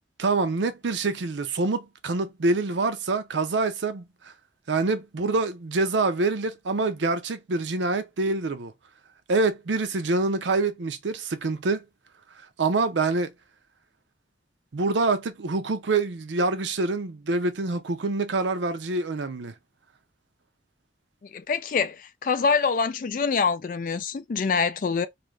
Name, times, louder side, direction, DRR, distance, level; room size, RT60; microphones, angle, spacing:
voice 1, 0.2-4.0 4.7-8.7 9.3-11.8 12.6-13.3 14.7-19.5, right 3 dB, 80° right, 0.6 m, -26 dB
voice 2, 21.3-25.1, left 5 dB, 45° left, 0.3 m, -25 dB
2.7 x 2.5 x 3.2 m
head